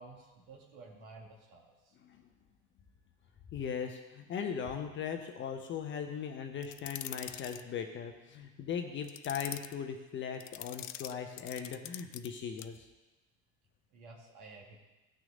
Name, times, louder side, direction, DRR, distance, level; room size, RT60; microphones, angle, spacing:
voice 1, 0.0-1.9 13.9-14.8, right 3 dB, 50° right, -1 dB, 2.6 m, -52 dB
voice 2, 3.5-12.8, left 7 dB, 25° left, 5 dB, 0.9 m, -39 dB
sound 1, 6.6-7.6 9.0-9.7 10.4-12.3 12.6-12.8, left 13 dB, 65° left, 0.5 m, -44 dB
16.5 x 6.1 x 3.8 m, 1.1 s
figure-of-eight pair, 75°, 42 cm